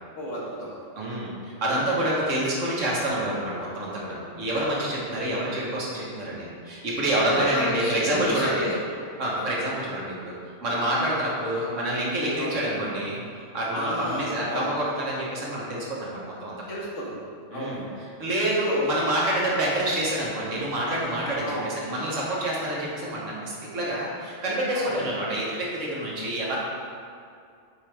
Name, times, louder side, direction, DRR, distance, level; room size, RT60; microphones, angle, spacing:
voice 1, 0.2-0.7 7.2-8.8 9.3-9.5 12.4-12.6 13.7-14.7 16.7-17.2 17.5-18.1 18.7-18.9 21.4-21.7 24.7-24.9, equal, 80° left, -5 dB, 1.7 m, -31 dB
voice 2, 0.9-8.7 9.2-10.3 10.6-13.2 13.5-16.5 17.5-26.6, right 1 dB, 85° right, -5 dB, 1.7 m, -27 dB
7.9 x 4.6 x 3.5 m, 2.3 s
omnidirectional pair, 1.3 m